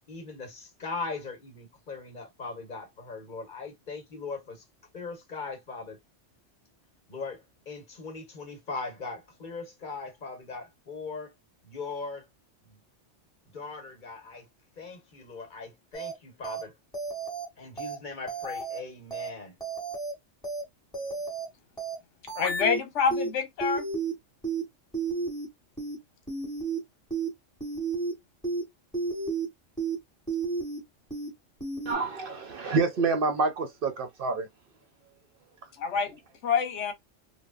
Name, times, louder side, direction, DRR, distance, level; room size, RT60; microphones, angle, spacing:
voice 1, 0.1-4.6 4.9-6.0 7.1-11.3 11.6-12.3 12.6-12.8 13.5-14.5 14.8-16.7 17.6-19.5, left 4 dB, 45° left, 1.2 m, -39 dB
sound 1, 15.9-16.1 16.4-16.6 16.9-17.5 17.8-18.0 18.3-18.8 19.1-19.3 19.6-20.1 20.4-20.6 20.9-21.5 21.8-22.0 22.3-22.8 23.1-23.3 23.6-24.1 24.4-24.6 24.9-25.5 25.8-26.0 26.3-26.8 27.1-27.3 27.6-28.1 28.4-28.6 28.9-29.5 29.8-30.0 30.3-30.8 31.1-31.3 31.6-31.9, right 4 dB, 5° left, 1.2 m, -32 dB
voice 2, 22.4-23.8 35.8-36.2 36.4-36.9, left 6 dB, 75° left, 1.1 m, -27 dB
voice 3, 31.9-34.4, right 4 dB, 60° right, 0.6 m, -27 dB
3.4 x 2.1 x 2.3 m
omnidirectional pair, 1.2 m